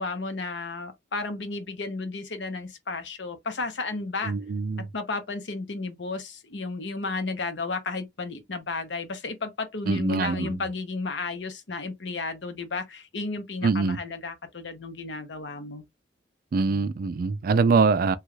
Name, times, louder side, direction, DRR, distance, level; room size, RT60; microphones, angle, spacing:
voice 1, 0.0-4.3 4.8-15.8, left 3 dB, 85° left, 0.7 m, -33 dB
voice 2, 4.3-4.9 9.9-10.6 13.6-14.0 16.5-18.2, right 4 dB, 55° right, 0.4 m, -23 dB
3.0 x 2.3 x 3.1 m
head